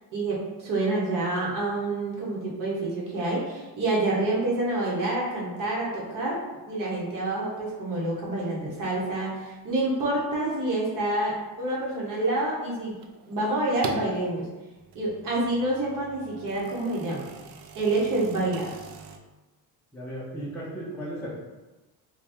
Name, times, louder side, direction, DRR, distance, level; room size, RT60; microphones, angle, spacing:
voice 1, 0.1-12.9 13.3-14.5 14.9-17.3 17.7-18.7, right 2 dB, 55° right, -5 dB, 1.0 m, -28 dB
sound 1, 13.0-14.2 14.7-19.2, right 4 dB, 90° right, 0.6 m, -42 dB
voice 2, 19.9-21.4, equal, 5° left, -9 dB, 0.5 m, -35 dB
3.4 x 2.2 x 4.2 m, 1.1 s
cardioid pair, 180°, 38 cm